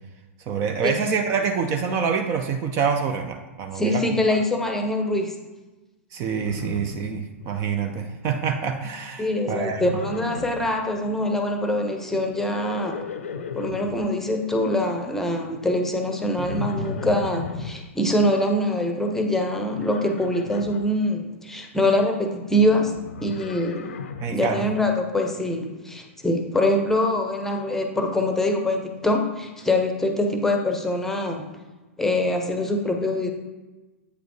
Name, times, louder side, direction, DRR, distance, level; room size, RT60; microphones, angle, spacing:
voice 1, 0.5-4.1 6.1-9.8 24.2-24.7, right 6 dB, 35° right, 6 dB, 0.5 m, -26 dB
voice 2, 3.7-5.4 9.2-13.0 13.6-22.9 23.2-24.0 24.3-31.5 32.0-33.3, left 1 dB, 5° left, 3 dB, 0.8 m, -24 dB
Livestock farm animals working animals, 6.4-7.7 7.9-8.5 9.8-10.7 12.3-14.1 16.4-17.8 19.7-20.9 22.6-24.4, left 4 dB, 70° left, 0.5 m, -35 dB
8.2 x 5.0 x 3.1 m, 1.2 s
figure-of-eight pair, 105°, 8 cm